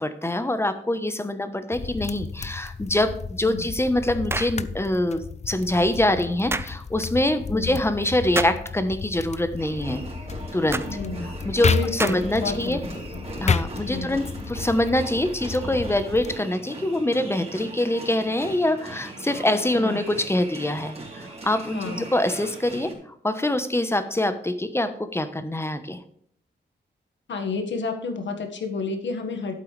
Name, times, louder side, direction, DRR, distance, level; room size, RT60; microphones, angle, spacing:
voice 1, 0.0-10.0 10.5-10.8 11.4-12.8 13.4-22.9 23.2-26.0, left 1 dB, 15° left, 10 dB, 1.0 m, -24 dB
sound 1, 1.7-16.4, left 5 dB, 35° left, 0.5 m, -32 dB
sound 2, 4.3-4.6 6.5-6.7 8.3-8.6 10.7-10.9 12.0-12.4, right 2 dB, 15° right, 0.5 m, -28 dB
sound 3, 9.6-22.9, right 2 dB, 35° right, 3.7 m, -39 dB
voice 2, 10.9-11.3 11.7-13.2 13.9-14.2 19.7-20.0 21.7-22.0 27.3-29.5, left 4 dB, 80° left, 5 dB, 1.7 m, -31 dB
12.0 x 8.5 x 3.3 m, 0.66 s
wide cardioid pair, 125°, 19 cm